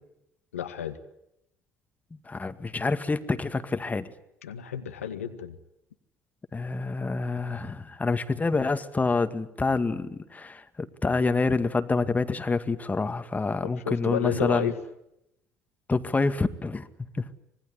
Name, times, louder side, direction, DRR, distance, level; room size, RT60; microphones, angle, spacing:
voice 1, 0.5-1.0 4.4-5.6 13.8-14.7, left 9 dB, 85° left, 8 dB, 1.5 m, -31 dB
voice 2, 2.1-4.1 6.5-10.6 11.0-14.7 15.9-16.9 17.1-17.3, left 3 dB, 20° left, 10 dB, 2.0 m, -27 dB
25.5 x 21.0 x 9.7 m, 0.81 s
hypercardioid pair, 60°, 7 cm